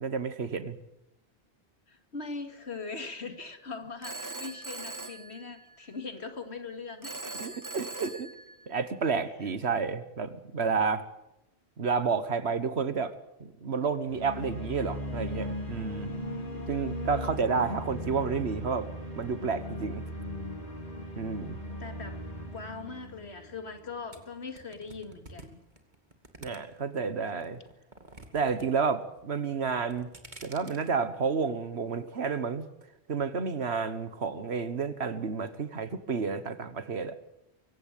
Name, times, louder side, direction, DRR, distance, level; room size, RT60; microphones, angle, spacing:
voice 1, 0.0-0.8 7.4-8.3 8.7-11.0 11.8-13.1 13.4-16.1 16.7-18.9 19.2-20.0 21.2-21.6 26.4-27.6 28.3-30.1 30.4-32.7 33.1-37.2, right 5 dB, 75° right, 13 dB, 1.7 m, -30 dB
voice 2, 1.9-7.4 17.0-17.8 21.5-22.2 22.5-25.6, left 4 dB, 80° left, 7 dB, 2.6 m, -41 dB
Telephone, 4.0-6.0 7.0-9.0, right 2 dB, 20° right, 0.9 m, -41 dB
sound 1, 14.1-24.1, left 1 dB, 50° left, 5.1 m, -38 dB
sound 2, 24.1-27.0 27.4-28.7 28.9-29.4 29.8-30.9, right 2 dB, 45° right, 2.6 m, -49 dB
24.0 x 16.0 x 9.1 m, 0.87 s
omnidirectional pair, 1.1 m